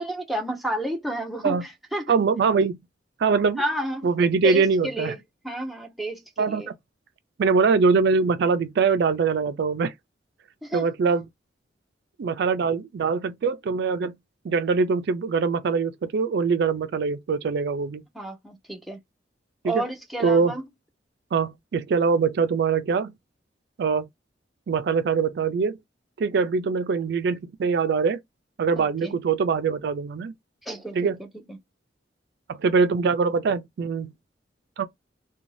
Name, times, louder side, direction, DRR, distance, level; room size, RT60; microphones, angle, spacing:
voice 1, 0.0-2.1 3.6-4.1 4.4-6.7 10.6-10.8 18.1-19.0 19.6-20.6 28.8-29.2 30.6-31.6, right 1 dB, ahead, 0.6 m, -31 dB
voice 2, 2.1-2.8 3.2-3.6 4.0-5.1 6.4-6.6 7.4-9.9 10.7-11.2 12.2-14.1 14.4-18.0 19.6-19.8 20.2-20.5 21.3-23.1 23.8-24.1 24.7-25.8 26.2-28.2 28.6-30.3 30.9-31.2 32.5-34.1 34.8-34.9, right 5 dB, 65° right, 0.4 m, -23 dB
2.6 x 2.2 x 3.1 m
head